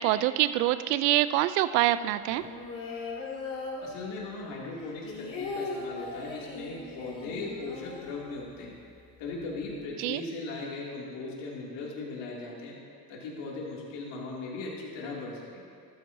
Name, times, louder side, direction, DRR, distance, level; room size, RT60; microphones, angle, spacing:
voice 1, 0.0-2.4 10.0-10.2, right 14 dB, 80° right, 14 dB, 0.6 m, -25 dB
sound 1, 2.3-4.4 4.7-8.7 9.0-9.1 9.3-9.8, left 3 dB, 40° left, 2.6 m, -39 dB
voice 2, 3.8-8.7 9.2-12.7 13.1-15.6, left 3 dB, 65° left, -3 dB, 2.9 m, -38 dB
13.0 x 13.0 x 2.8 m, 2.4 s
supercardioid pair, 105°, 47 cm